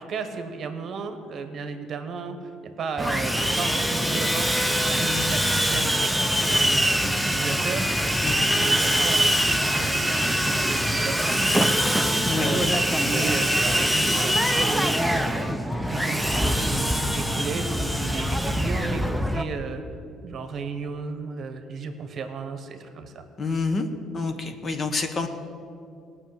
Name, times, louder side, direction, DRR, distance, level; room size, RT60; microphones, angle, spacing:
voice 1, 0.0-2.5 2.8-4.5 4.9-7.9 8.5-11.9 12.3-15.0 15.3-15.6 15.9-19.8 20.2-23.2, right 5 dB, 45° right, 7 dB, 1.2 m, -34 dB
Sawing, 3.0-19.4, equal, ahead, 0.7 m, -23 dB
voice 2, 23.4-23.9 24.1-25.3, left 4 dB, 35° left, 8 dB, 1.1 m, -28 dB
17.5 x 6.2 x 7.9 m, 2.5 s
cardioid pair, 110°, 0 cm